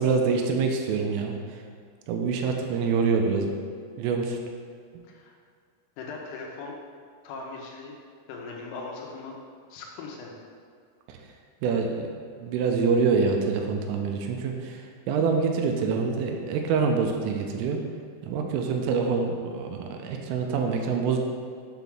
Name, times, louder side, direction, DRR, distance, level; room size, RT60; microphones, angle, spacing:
voice 1, 0.0-1.4 2.1-3.5 4.0-4.4 11.6-12.1 12.4-14.8 15.1-17.8 18.2-21.2, right 5 dB, 85° right, 3 dB, 3.2 m, -25 dB
voice 2, 6.0-6.8 7.2-7.9 8.3-9.4 9.7-10.3, left 3 dB, 85° left, 0 dB, 3.6 m, -39 dB
8.1 x 5.9 x 3.6 m, 2.1 s
omnidirectional pair, 5.8 m